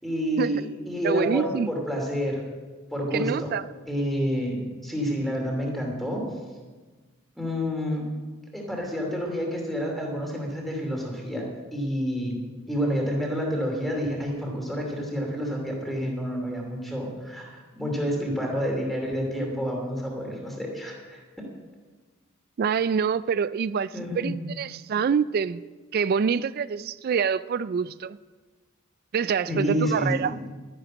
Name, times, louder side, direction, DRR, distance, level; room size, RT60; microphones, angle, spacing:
voice 1, 0.0-2.4 2.9-3.5 3.9-6.2 7.4-8.1 8.5-11.5 11.7-12.4 12.7-21.2 23.9-24.3 29.5-30.3, equal, ahead, 2.7 m, -29 dB
voice 2, 1.0-1.7 3.1-3.7 22.6-25.6 25.9-28.2 29.1-30.3, right 6 dB, 45° right, 0.3 m, -26 dB
12.0 x 10.5 x 6.2 m
head